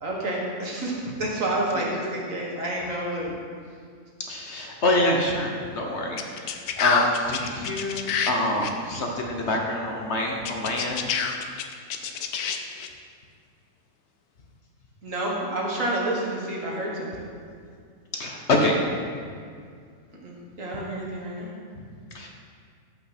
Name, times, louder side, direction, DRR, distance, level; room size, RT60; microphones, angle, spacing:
voice 1, 0.0-3.3 15.0-17.2 20.2-21.5, right 1 dB, 60° right, -3 dB, 2.0 m, -29 dB
voice 2, 4.2-11.2 18.1-18.8 22.1-22.3, left 1 dB, 50° left, 0 dB, 1.1 m, -26 dB
sound 1, 6.2-8.3 8.6-8.7 10.4-12.9, left 7 dB, 80° left, 1.2 m, -27 dB
13.5 x 5.8 x 4.3 m, 2.1 s
omnidirectional pair, 1.6 m